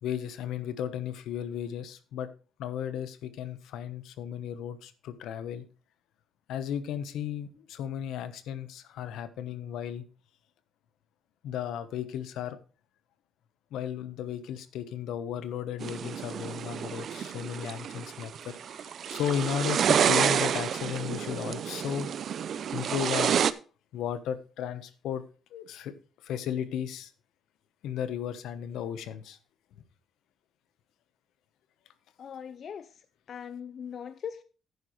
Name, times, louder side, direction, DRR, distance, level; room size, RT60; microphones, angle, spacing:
voice 1, 0.0-2.3 2.6-5.6 6.5-10.0 11.4-12.6 13.7-22.1 22.7-23.4 23.9-25.2 25.5-25.9 26.2-27.1 27.8-29.4, left 9 dB, 85° left, 1.0 m, -35 dB
sound 1, 15.8-23.5, right 8 dB, 60° right, 0.6 m, -29 dB
voice 2, 32.2-34.4, left 7 dB, 55° left, 0.5 m, -41 dB
11.5 x 9.5 x 3.1 m
cardioid pair, 90°, 0 cm